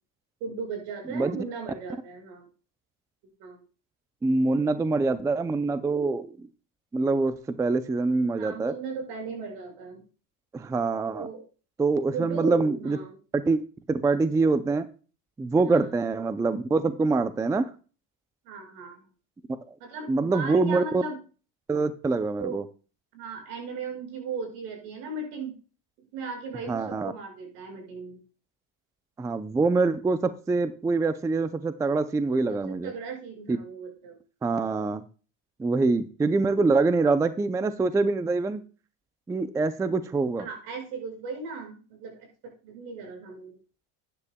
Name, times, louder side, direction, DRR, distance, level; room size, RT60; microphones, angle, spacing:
voice 1, 0.4-2.5 3.4-3.6 8.4-10.0 11.1-11.4 12.1-13.2 15.6-15.9 18.5-19.0 19.8-21.2 22.4-22.6 23.1-25.5 26.1-28.2 32.5-34.2 40.4-42.1 42.6-43.6, right 4 dB, 75° right, 1 dB, 5.9 m, -37 dB
voice 2, 4.2-6.5 6.9-8.7 10.5-11.3 11.8-13.0 13.3-13.6 13.9-14.9 15.4-17.7 19.7-19.8 20.1-21.0 21.7-22.6 26.7-27.1 29.2-32.9 33.5-33.6 34.4-35.0 35.6-38.6 39.3-40.5, right 3 dB, 10° right, 13 dB, 0.4 m, -25 dB
13.0 x 9.9 x 2.2 m, 0.36 s
cardioid pair, 125°, 39 cm